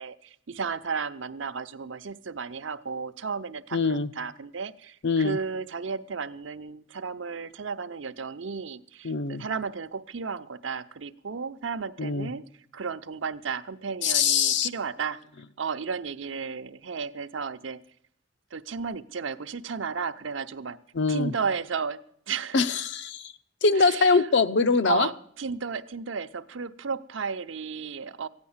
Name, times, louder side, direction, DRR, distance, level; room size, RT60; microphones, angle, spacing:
voice 1, 0.0-12.5 12.7-15.2 15.6-17.8 18.5-20.8 21.1-22.0 22.3-22.6 23.7-24.3 24.8-28.3, right 5 dB, 75° right, 11 dB, 0.7 m, -33 dB
voice 2, 3.7-4.1 5.0-5.4 9.0-9.4 12.0-12.3 14.0-14.7 20.9-21.3 22.5-23.3 23.6-25.1, left 4 dB, 65° left, 12 dB, 0.7 m, -23 dB
15.0 x 9.7 x 7.2 m, 0.66 s
head